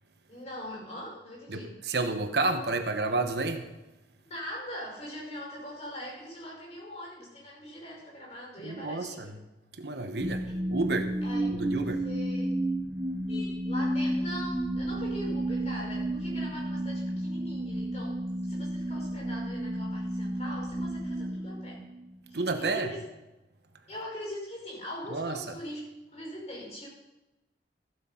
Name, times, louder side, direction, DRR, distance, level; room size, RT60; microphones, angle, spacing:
voice 1, 0.3-1.8 4.2-9.4 10.4-10.6 11.2-11.5 11.8-12.7 13.3-21.8 22.3-23.0 23.9-25.8 26.1-26.9, equal, 40° left, -2 dB, 5.6 m, -42 dB
voice 2, 1.5-3.6 8.6-9.3 9.8-11.1 11.5-12.0 22.3-22.9 25.1-25.4, right 3 dB, 65° right, 7 dB, 1.1 m, -30 dB
sound 1, 10.2-22.4, right 1 dB, 25° right, 0.7 m, -32 dB
14.5 x 8.2 x 5.7 m, 1.0 s
head